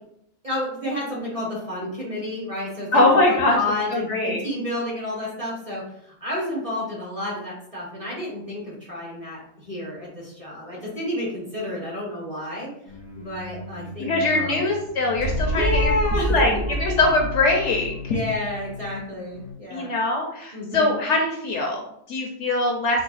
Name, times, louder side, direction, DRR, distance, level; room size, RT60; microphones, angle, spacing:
voice 1, 0.4-12.7 13.2-14.7 15.5-16.4 16.9-17.0 18.1-19.9 20.5-21.0, left 1 dB, 30° right, -5 dB, 0.8 m, -30 dB
voice 2, 2.9-3.6 3.9-4.4 14.0-18.2 19.7-23.0, left 2 dB, 65° left, 1 dB, 0.8 m, -22 dB
sound 1, 12.9-19.5, right 1 dB, 75° right, 1.6 m, -30 dB
4.7 x 2.2 x 2.4 m, 0.73 s
omnidirectional pair, 1.5 m